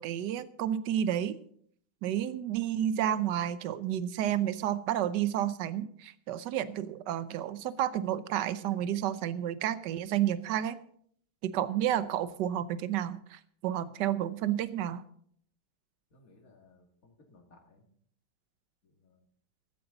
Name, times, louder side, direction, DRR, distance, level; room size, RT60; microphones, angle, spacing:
voice 1, 0.0-1.4 2.0-10.8 11.4-15.0, right 11 dB, 65° right, 14 dB, 1.3 m, -31 dB
voice 2, 16.1-17.9 18.8-19.3, left 2 dB, 40° left, 1 dB, 2.8 m, -61 dB
14.5 x 14.0 x 4.0 m, 0.63 s
omnidirectional pair, 2.2 m